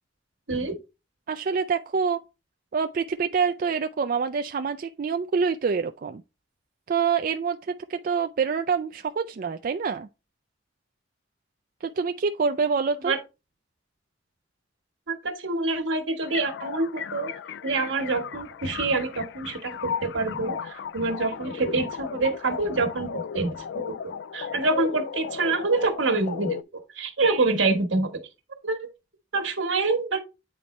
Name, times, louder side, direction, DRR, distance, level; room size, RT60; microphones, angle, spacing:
voice 1, 1.3-2.2 2.7-6.2 6.9-10.1 11.8-13.1, right 5 dB, 45° right, 0.4 m, -26 dB
voice 2, 15.1-17.3 17.6-26.6 26.9-28.1 28.6-28.9 29.3-30.2, right 3 dB, 80° right, 1.4 m, -26 dB
sound 1, 16.2-26.6, left 6 dB, 65° left, 0.3 m, -35 dB
8.8 x 4.1 x 3.2 m
head